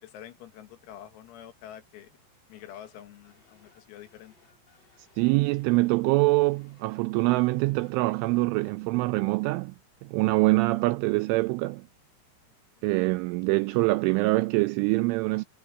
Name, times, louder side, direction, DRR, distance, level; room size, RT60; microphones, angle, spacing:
voice 1, 0.0-2.2 2.5-4.3 12.8-12.9, left 11 dB, 85° left, 4.8 m, -47 dB
sound 1, 2.5-8.8, left 4 dB, 25° left, 5.1 m, -63 dB
voice 2, 5.2-9.7 10.0-11.9 12.8-15.4, right 23 dB, 85° right, 2.8 m, -24 dB
omnidirectional pair, 6.0 m